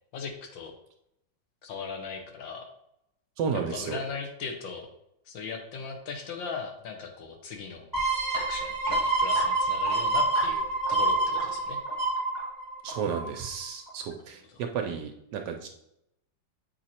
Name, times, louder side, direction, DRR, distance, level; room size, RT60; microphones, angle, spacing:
voice 1, 0.1-0.7 1.6-2.6 3.5-4.9 5.3-7.9 8.3-11.8 14.5-14.6, left 5 dB, 75° left, 3 dB, 1.7 m, -38 dB
voice 2, 3.4-4.0 12.8-15.7, right 6 dB, 75° right, 4 dB, 1.1 m, -32 dB
sound 1, 7.9-13.4 13.9-14.0, right 2 dB, 10° right, 1.4 m, -27 dB
7.7 x 2.9 x 4.2 m, 0.81 s
omnidirectional pair, 2.1 m